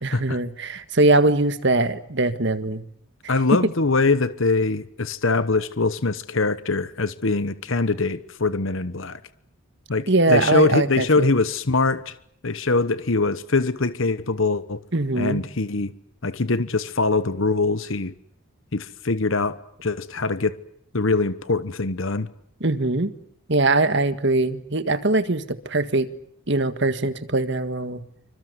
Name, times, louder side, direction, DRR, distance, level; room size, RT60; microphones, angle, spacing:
voice 1, 0.0-2.8 10.1-11.3 14.9-15.4 22.6-23.1 23.5-26.1 26.5-28.0, right 2 dB, 55° right, 1.8 m, -21 dB
voice 2, 3.3-9.2 9.9-12.1 12.4-14.8 15.1-15.9 16.2-18.1 18.7-20.6 20.9-22.3, left 3 dB, 65° left, 1.1 m, -23 dB
27.5 x 25.5 x 8.1 m
head